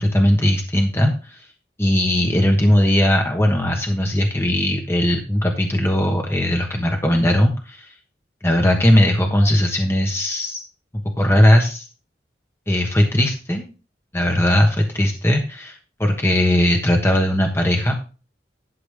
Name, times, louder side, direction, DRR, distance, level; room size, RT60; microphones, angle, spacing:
voice 1, 0.0-1.5 1.8-7.9 8.4-10.6 11.2-11.9 12.7-13.6 14.1-17.9, left 1 dB, 15° left, 3 dB, 1.2 m, -18 dB
11.5 x 7.1 x 3.5 m, 0.33 s
head